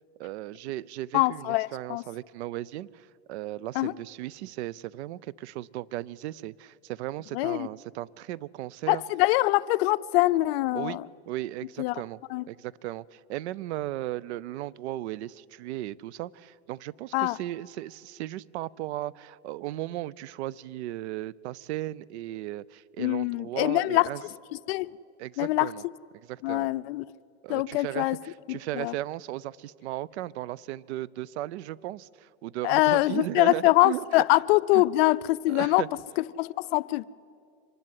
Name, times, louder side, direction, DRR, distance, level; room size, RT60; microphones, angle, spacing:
voice 1, 0.2-9.0 10.7-11.0 11.3-12.2 12.5-24.2 25.2-25.8 26.3-26.7 27.4-34.0 34.7-34.8 35.5-35.9, right 15 dB, 80° right, 0.6 m, -36 dB
voice 2, 1.1-2.0 3.7-3.9 7.3-7.7 8.9-11.1 11.8-11.9 12.3-12.4 17.1-17.4 23.0-24.1 24.7-24.9 25.4-25.7 26.4-27.1 27.5-28.2 28.5-28.9 32.6-35.8 36.4-37.0, left 19 dB, 65° left, 0.5 m, -24 dB
25.0 x 12.0 x 9.7 m
supercardioid pair, 135°, 33 cm